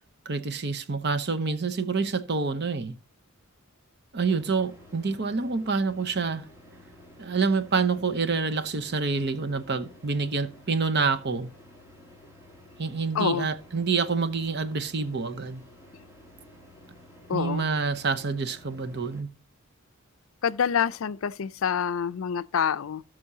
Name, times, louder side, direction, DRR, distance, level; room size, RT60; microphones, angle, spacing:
voice 1, 0.3-2.9 4.1-6.5 7.2-11.5 12.8-15.6 17.3-19.3, right 4 dB, 50° right, 0.8 m, -27 dB
sound 1, 4.2-19.2, left 1 dB, 15° right, 2.6 m, -52 dB
voice 2, 13.1-13.5 17.3-17.7 20.4-23.0, left 7 dB, 65° left, 0.4 m, -27 dB
17.0 x 6.1 x 2.8 m
head